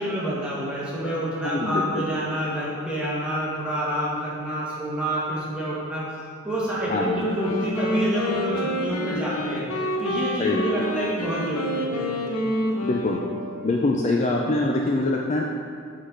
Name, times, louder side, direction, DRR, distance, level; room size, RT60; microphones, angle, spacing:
voice 1, 0.0-6.0 6.4-9.6 10.0-12.4, equal, 5° right, -9 dB, 1.4 m, -28 dB
voice 2, 1.4-2.1 6.9-7.2 10.4-10.6 12.8-13.2 13.6-15.4, left 2 dB, 35° left, 0 dB, 0.3 m, -24 dB
Wind instrument woodwind instrument, 7.2-13.7, equal, 90° left, 0.7 m, -28 dB
6.4 x 3.9 x 4.7 m, 2.3 s
head